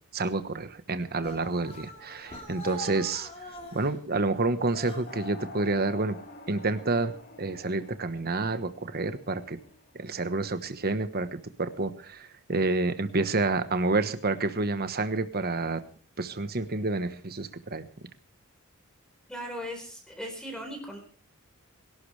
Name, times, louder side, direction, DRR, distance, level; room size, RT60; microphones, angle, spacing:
voice 1, 0.1-3.3 3.7-6.1 6.5-9.6 9.9-15.8 16.2-17.8, right 3 dB, 45° right, 11 dB, 1.2 m, -29 dB
sound 1, 1.2-4.0 4.7-5.2, equal, 25° left, 4.1 m, -42 dB
sound 2, 5.0-10.2, left 3 dB, 45° left, 2.6 m, -48 dB
voice 2, 19.3-21.0, equal, 5° left, 3 dB, 4.0 m, -38 dB
23.0 x 12.0 x 3.3 m, 0.43 s
head